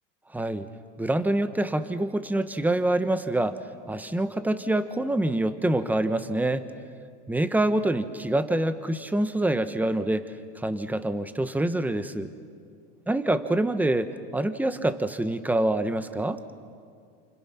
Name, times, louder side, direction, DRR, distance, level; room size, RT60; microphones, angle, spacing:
voice 1, 0.3-0.7 1.0-3.6 3.9-6.7 7.3-12.3 13.1-16.4, right 1 dB, 5° right, 11 dB, 1.1 m, -26 dB
29.5 x 27.5 x 5.8 m, 2.2 s
supercardioid pair, 125°, 37 cm